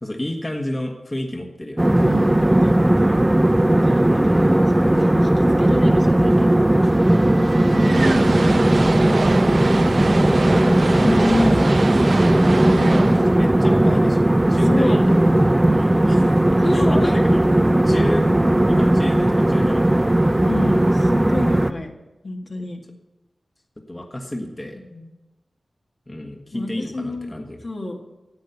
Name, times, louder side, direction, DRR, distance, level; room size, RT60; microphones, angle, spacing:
voice 1, 0.0-1.9 4.1-4.5 7.8-8.5 10.6-12.6 12.9-15.1 15.7-17.4 17.8-18.3 18.7-20.1 23.9-24.8 26.1-27.6, left 1 dB, 25° left, 2 dB, 1.6 m, -28 dB
sound 1, 1.8-21.7, right 1 dB, 15° right, 0.6 m, -17 dB
voice 2, 2.0-3.2 3.6-4.2 4.7-6.8 7.5-9.4 12.7-13.0 14.7-15.0 16.6-17.1 20.5-21.9 22.2-22.8 24.9-25.1 26.5-27.4 27.6-28.2, left 2 dB, 50° left, 1 dB, 1.8 m, -30 dB
sound 2, 6.8-14.9, right 3 dB, 65° right, 0.9 m, -27 dB
11.5 x 8.4 x 8.0 m, 1.1 s
wide cardioid pair, 80°, 0 cm